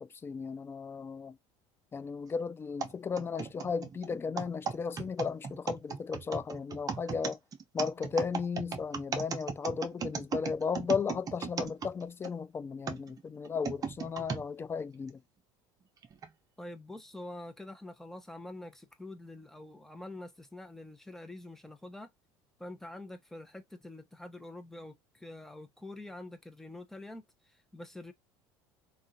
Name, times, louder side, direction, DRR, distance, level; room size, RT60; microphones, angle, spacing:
voice 1, 0.0-1.4 1.9-7.4 7.7-15.2, left 5 dB, 20° left, 0.3 m, -35 dB
sound 1, 2.8-12.3 12.9-14.4 15.1-15.2 16.0-16.3, right 6 dB, 35° right, 0.8 m, -37 dB
voice 2, 16.6-22.1 22.6-28.1, left 1 dB, 5° left, 0.8 m, -46 dB
3.6 x 2.4 x 2.6 m
supercardioid pair, 100°, 11 cm